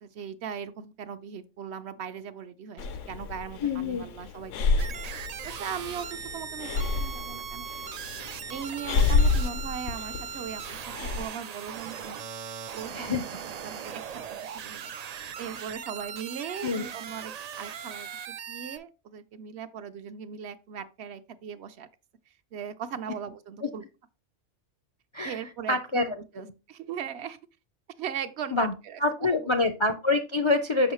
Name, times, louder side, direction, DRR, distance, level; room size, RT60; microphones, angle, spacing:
voice 1, 0.0-4.9 5.4-7.7 8.5-12.2 12.7-14.2 14.5-14.9 15.4-21.9 22.3-23.8 25.2-27.4 28.0-29.0 29.4-29.5, right 7 dB, 65° right, 0.8 m, -39 dB
Breathing, 2.8-11.3, left 4 dB, 85° left, 1.0 m, -29 dB
voice 2, 3.6-4.0 12.9-13.2 16.6-16.8 23.6-23.7 25.1-25.4 25.7-26.0 28.5-28.7 29.0-30.9, left 3 dB, 45° left, 0.4 m, -26 dB
sound 1, 4.8-18.8, right 8 dB, 90° right, 0.3 m, -39 dB
6.3 x 6.2 x 3.0 m
omnidirectional pair, 1.3 m